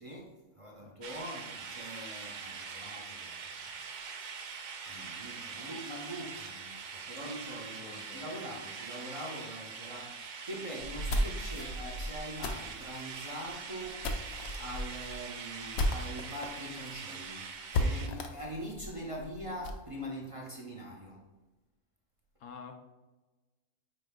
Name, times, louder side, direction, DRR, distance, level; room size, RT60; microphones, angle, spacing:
voice 1, 0.0-3.6 4.9-21.2, equal, 25° right, -2 dB, 0.8 m, -43 dB
sound 1, 1.0-18.1, right 5 dB, 85° right, 0.4 m, -43 dB
voice 2, 7.7-8.2 22.4-22.9, left 5 dB, 75° left, 5 dB, 1.2 m, -49 dB
sound 2, 10.8-16.5 16.8-16.9 17.2-17.3 17.7-19.8, left 1 dB, 55° left, 0.9 m, -34 dB
9.0 x 5.3 x 2.3 m, 1.1 s
omnidirectional pair, 1.5 m